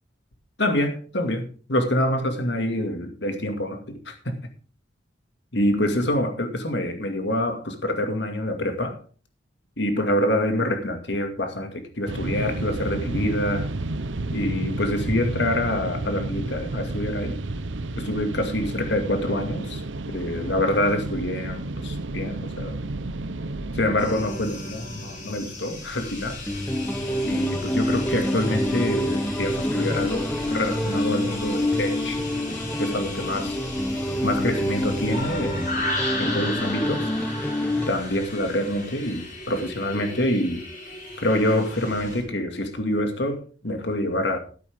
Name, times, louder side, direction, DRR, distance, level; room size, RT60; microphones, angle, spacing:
voice 1, 0.6-4.5 5.5-9.0 9.8-13.7 14.3-17.4 18.0-19.8 20.1-22.8 23.7-26.4 27.2-32.2 32.8-33.6 34.2-35.8 36.2-37.1 37.8-40.6 41.2-44.4, left 1 dB, 65° left, 2.2 m, -26 dB
sound 1, 12.1-24.1, right 2 dB, 90° right, 0.9 m, -31 dB
sound 2, 24.0-42.2, left 1 dB, 45° left, 6.9 m, -35 dB
sound 3, 26.5-37.9, left 1 dB, 10° left, 0.7 m, -27 dB
13.5 x 12.0 x 3.6 m
head